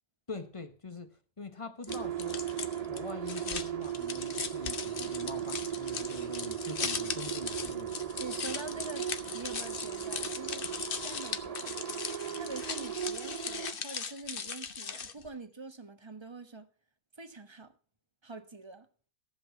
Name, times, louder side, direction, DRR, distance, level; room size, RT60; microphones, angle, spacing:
voice 1, 0.3-2.4 2.8-7.9, left 3 dB, 20° left, 1.1 m, -44 dB
sound 1, 1.8-15.3, left 6 dB, 40° left, 1.0 m, -39 dB
sound 2, 1.9-13.7, right 9 dB, 55° right, 0.4 m, -37 dB
voice 2, 8.2-10.7 11.0-11.8 12.4-16.7 17.2-17.7 18.2-18.9, right 3 dB, 20° right, 1.1 m, -45 dB
15.0 x 7.7 x 6.0 m
omnidirectional pair, 1.7 m